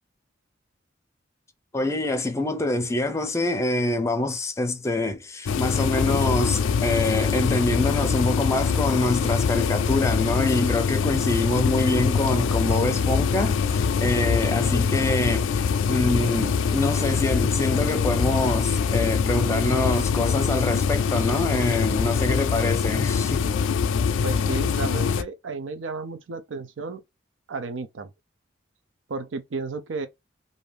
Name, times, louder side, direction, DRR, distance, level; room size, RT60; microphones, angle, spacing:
voice 1, 1.7-15.6 15.9-23.5, left 2 dB, 15° left, 0.4 m, -25 dB
sound 1, 5.5-25.2, left 6 dB, 90° left, 0.3 m, -24 dB
voice 2, 24.2-27.0 27.5-28.1 29.1-30.1, right 3 dB, 80° right, 0.5 m, -33 dB
2.6 x 2.5 x 3.3 m
head